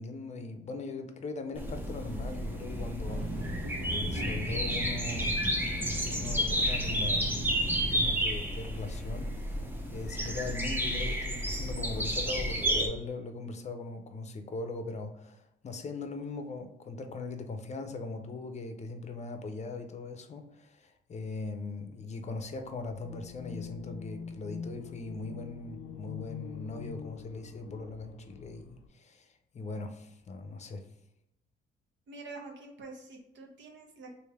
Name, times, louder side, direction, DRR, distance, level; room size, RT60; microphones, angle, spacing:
voice 1, 0.0-3.3 3.9-5.6 5.9-7.4 7.9-9.6 9.9-30.8, left 3 dB, 35° left, 6 dB, 0.6 m, -40 dB
sound 1, 1.6-12.9, equal, 10° right, 0.6 m, -31 dB
sound 2, 3.0-8.1, right 1 dB, 90° right, 1.2 m, -38 dB
sound 3, 22.9-28.9, left 7 dB, 80° left, 0.4 m, -44 dB
voice 2, 32.1-34.2, right 3 dB, 65° right, 2 dB, 0.9 m, -46 dB
3.2 x 2.6 x 3.5 m, 0.85 s
cardioid pair, 90°, 20 cm